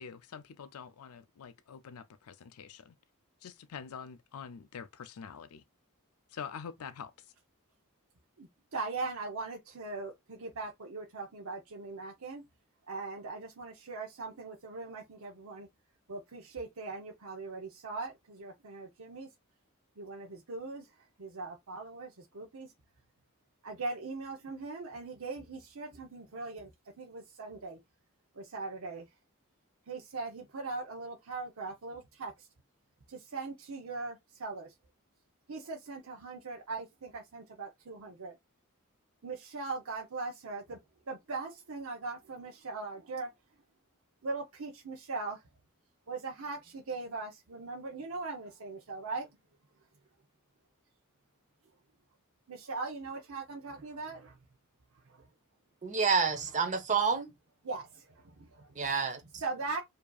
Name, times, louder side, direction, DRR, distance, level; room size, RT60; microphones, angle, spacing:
voice 1, 0.0-2.9 3.4-5.6 6.3-7.1, left 6 dB, 85° left, 0.5 m, -45 dB
voice 2, 8.7-12.4 12.9-15.7 16.1-19.3 20.0-20.9 21.2-22.7 23.6-26.7 27.0-27.8 28.3-29.1 29.9-32.5 33.1-34.7 35.5-38.3 39.2-40.8 41.1-43.3 44.2-45.4 46.1-49.3 52.5-54.4 55.1-55.3 57.6-58.7 59.4-59.8, right 3 dB, 70° right, 0.8 m, -40 dB
voice 3, 55.8-57.3 58.7-59.4, right 5 dB, 35° right, 0.9 m, -29 dB
4.8 x 2.7 x 2.4 m
head